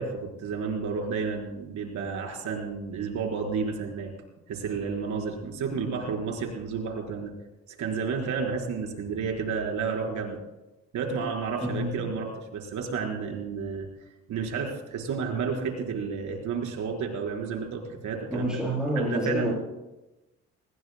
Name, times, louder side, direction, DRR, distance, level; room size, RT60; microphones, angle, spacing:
voice 1, 0.0-4.1 4.5-7.3 7.8-10.4 10.9-13.9 14.3-18.6 19.0-19.5, right 5 dB, 75° right, 1 dB, 4.4 m, -31 dB
voice 2, 11.6-12.0 18.3-19.5, equal, 5° right, -6 dB, 7.1 m, -28 dB
25.0 x 21.0 x 2.2 m, 1.0 s
cardioid pair, 90°, 30 cm